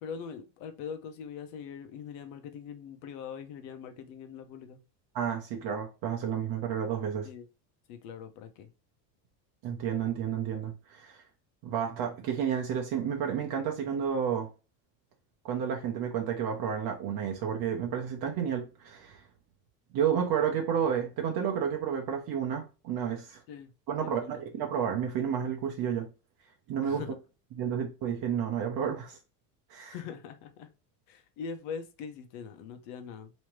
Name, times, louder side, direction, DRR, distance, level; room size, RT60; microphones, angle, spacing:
voice 1, 0.0-4.8 7.2-7.5 7.9-8.7 23.5-23.7 24.0-24.3 26.8-27.2 29.8-30.7 31.1-33.3, left 6 dB, 65° left, 1.0 m, -42 dB
voice 2, 5.1-7.3 9.6-11.2 11.6-14.5 15.4-19.2 19.9-23.4 23.9-26.1 26.7-27.0 27.6-29.2 29.7-29.9, right 8 dB, 50° right, 1.0 m, -31 dB
3.3 x 3.1 x 3.1 m
supercardioid pair, 115°, 48 cm